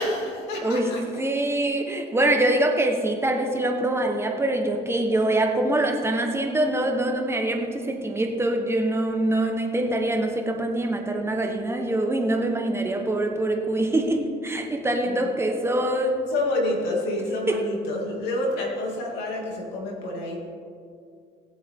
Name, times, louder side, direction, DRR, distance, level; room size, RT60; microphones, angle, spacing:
voice 1, 0.0-1.0 15.0-15.3 16.3-20.4, left 1 dB, 90° left, -1 dB, 2.7 m, -28 dB
voice 2, 0.6-16.3 17.5-17.7, right 1 dB, 15° right, 3 dB, 1.3 m, -24 dB
19.0 x 8.2 x 3.8 m, 2.3 s
cardioid pair, 110°, 17 cm